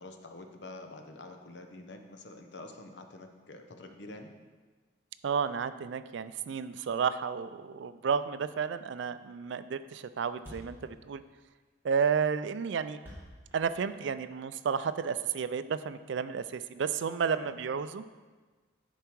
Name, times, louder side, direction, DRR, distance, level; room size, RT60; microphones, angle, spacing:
voice 1, 0.0-4.3 17.3-17.6, left 2 dB, 70° left, 5 dB, 0.8 m, -47 dB
voice 2, 5.2-11.2 11.8-13.0 13.5-18.0, right 6 dB, 75° right, 13 dB, 0.4 m, -32 dB
Thump thud, 9.5-9.6 9.8-9.9 10.1-10.2 10.4-14.4, equal, 10° right, 2.0 m, -50 dB
10.5 x 4.5 x 4.6 m, 1.4 s
head